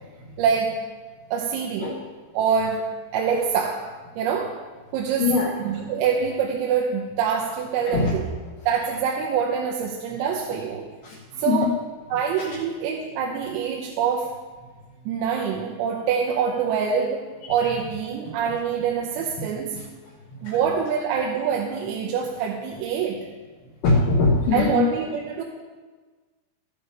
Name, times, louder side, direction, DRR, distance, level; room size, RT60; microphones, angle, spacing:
voice 1, 0.4-0.8 1.3-2.0 2.3-3.9 4.2-4.6 4.9-8.3 8.7-10.9 11.4-11.7 12.1-14.3 15.1-19.8 20.4-23.3 24.5-25.4, right 7 dB, 85° right, -1 dB, 3.6 m, -25 dB
voice 2, 5.2-5.5 7.9-8.2 11.0-11.7 12.4-12.5 17.6-17.7 20.4-20.6 23.8-24.8, left 3 dB, 70° left, -2 dB, 2.6 m, -22 dB
13.0 x 8.7 x 5.2 m, 1.4 s
omnidirectional pair, 5.9 m